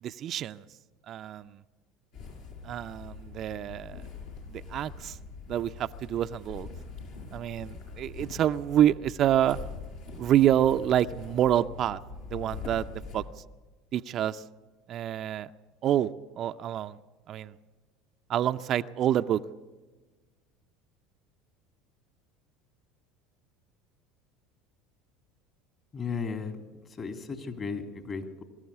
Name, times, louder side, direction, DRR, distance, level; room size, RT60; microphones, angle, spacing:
voice 1, 0.0-0.6 1.1-1.6 2.6-4.0 4.5-5.2 5.5-6.7 7.3-9.6 10.2-12.0 12.3-12.9 13.1-13.2 13.9-14.4 14.9-15.5 15.8-16.1 16.4-17.0 17.3-17.5 18.3-19.4, right 11 dB, 50° right, 10 dB, 0.6 m, -27 dB
sound 1, 2.1-13.2, left 4 dB, 70° left, 6.3 m, -43 dB
voice 2, 25.9-26.6 27.0-28.4, left 5 dB, 35° left, 6 dB, 2.9 m, -35 dB
23.0 x 13.5 x 8.4 m, 1.3 s
hypercardioid pair, 80°, 0 cm